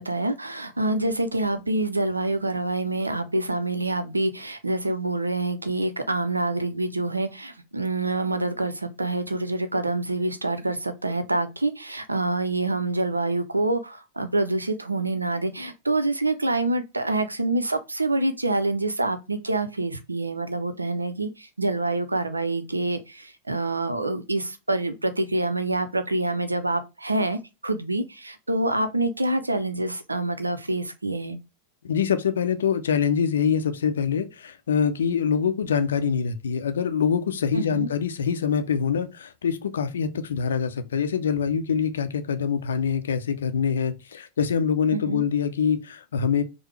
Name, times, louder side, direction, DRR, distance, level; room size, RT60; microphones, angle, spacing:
voice 1, 0.0-31.4 37.5-37.9 44.9-45.2, right 2 dB, 80° right, 0.5 m, -26 dB
voice 2, 31.8-46.4, left 7 dB, 65° left, 0.5 m, -25 dB
4.7 x 2.0 x 3.2 m
figure-of-eight pair, 90°, 0 cm